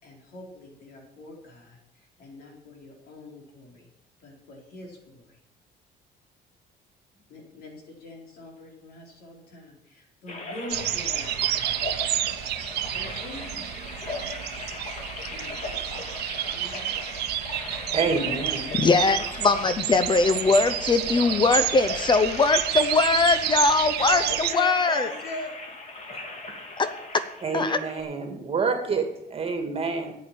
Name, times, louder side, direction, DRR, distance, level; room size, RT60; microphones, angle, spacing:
voice 1, 0.0-3.9 4.2-5.4 7.3-11.7 12.9-14.0 15.3-15.9 16.5-16.9 17.5-17.8 24.0-25.8, left 2 dB, 65° left, 0 dB, 4.4 m, -41 dB
sound 1, 10.3-28.0, left 2 dB, 45° left, 2.9 m, -37 dB
sound 2, 10.7-24.5, right 14 dB, 75° right, 0.7 m, -30 dB
voice 2, 17.9-18.7 27.4-30.1, right 4 dB, 35° right, 5 dB, 2.4 m, -28 dB
voice 3, 18.7-24.2 24.5-25.1 26.8-26.9 27.5-27.8, left 3 dB, 25° left, 12 dB, 0.8 m, -21 dB
9.7 x 8.6 x 8.7 m, 0.78 s
cardioid pair, 110°, 17 cm